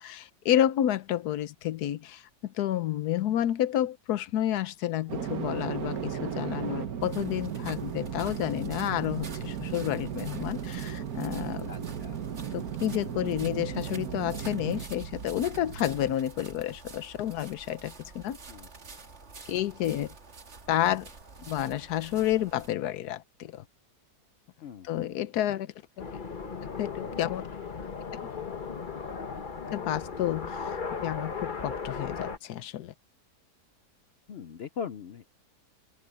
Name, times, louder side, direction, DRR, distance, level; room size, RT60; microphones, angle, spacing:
voice 1, 0.0-11.7 12.5-18.4 19.5-20.1 20.7-21.1 21.4-23.6 24.8-25.7 26.8-27.5 28.1-28.4 29.7-32.9, left 12 dB, 75° left, 1.3 m, -30 dB
sound 1, 5.1-16.1, right 8 dB, 65° right, 1.7 m, -36 dB
sound 2, 7.0-22.7, right 4 dB, 45° right, 1.9 m, -48 dB
voice 2, 11.7-12.2 18.5-18.7 24.6-24.9 34.3-35.3, left 7 dB, 60° left, 0.6 m, -40 dB
sound 3, 26.0-32.4, left 5 dB, 35° left, 1.2 m, -36 dB
open air
omnidirectional pair, 1.7 m